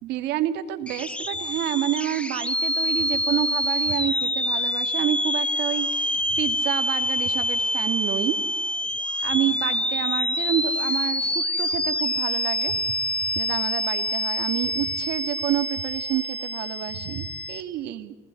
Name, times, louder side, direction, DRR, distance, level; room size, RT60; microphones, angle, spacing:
voice 1, 0.0-8.4 9.2-12.8 13.2-18.2, right 13 dB, 85° right, 8 dB, 2.4 m, -29 dB
sound 1, 0.9-17.6, left 1 dB, 5° left, 1.3 m, -26 dB
29.0 x 19.0 x 9.9 m, 1.1 s
cardioid pair, 110°, 17 cm